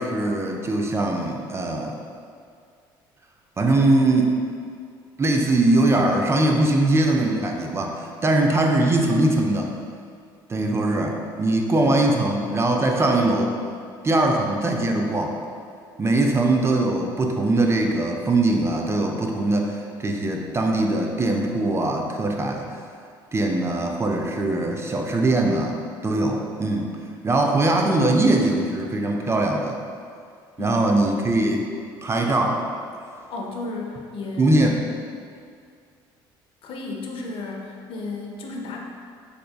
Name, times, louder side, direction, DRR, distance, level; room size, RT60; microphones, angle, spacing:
voice 1, 0.0-2.0 3.6-4.4 5.2-9.7 10.5-13.5 14.0-15.4 16.0-22.8 23.3-27.0 27.2-29.8 30.6-31.7 32.0-32.6 34.4-34.9, right 2 dB, 25° right, 1 dB, 0.4 m, -21 dB
voice 2, 28.0-28.5 30.6-30.8 33.3-34.5 36.6-38.8, left 3 dB, 55° left, 0 dB, 0.5 m, -33 dB
3.5 x 3.2 x 2.2 m, 2.3 s
supercardioid pair, 75°, 11 cm